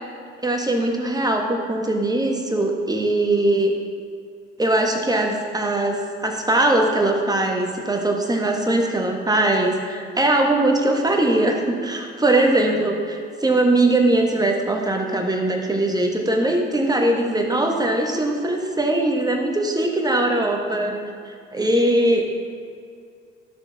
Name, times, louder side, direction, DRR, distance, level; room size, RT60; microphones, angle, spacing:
voice 1, 0.4-3.7 4.6-21.0 21.2-22.2, right 1 dB, 10° right, 1 dB, 1.2 m, -21 dB
12.0 x 6.6 x 2.4 m, 2.2 s
hypercardioid pair, 60°, 34 cm